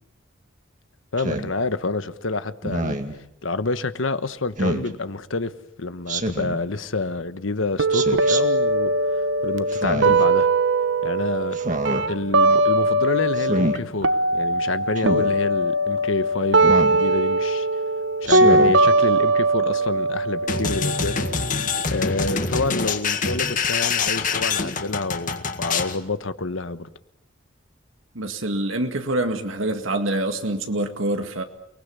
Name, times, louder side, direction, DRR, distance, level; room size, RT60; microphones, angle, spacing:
voice 1, 1.1-3.0 3.4-5.5 5.8-8.9 9.4-10.5 11.0-11.6 12.1-17.7 18.2-21.2 21.9-26.9, left 3 dB, 80° left, 1.3 m, -28 dB
Speech synthesizer, 1.2-1.5 2.6-3.1 4.6-4.9 6.1-6.6 7.9-8.4 9.7-10.2 11.5-12.0 13.4-13.8 15.0-15.3 16.6-17.0 18.2-18.8, right 1 dB, 40° right, 2.1 m, -26 dB
sound 1, 7.8-13.8 14.0-21.8, right 2 dB, 65° right, 1.1 m, -21 dB
sound 2, 20.5-26.0, left 5 dB, 40° left, 1.9 m, -25 dB
voice 2, 28.1-31.4, right 1 dB, 85° right, 2.1 m, -25 dB
29.5 x 20.0 x 8.4 m
head